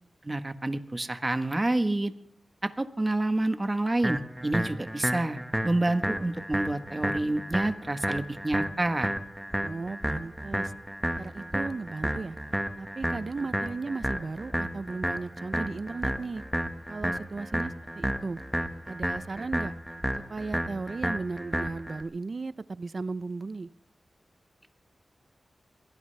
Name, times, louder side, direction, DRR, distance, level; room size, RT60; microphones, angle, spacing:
voice 1, 0.2-2.1 2.6-5.4 5.6-9.1, right 2 dB, 25° right, 9 dB, 1.3 m, -28 dB
sound 1, 4.0-22.0, equal, 5° right, 1.6 m, -32 dB
voice 2, 9.6-10.7 11.2-12.4 12.8-16.4 16.9-18.4 18.8-19.7 20.2-23.7, right 3 dB, 50° right, 16 dB, 0.6 m, -36 dB
22.5 x 17.0 x 3.4 m, 0.67 s
wide cardioid pair, 80°, 0 cm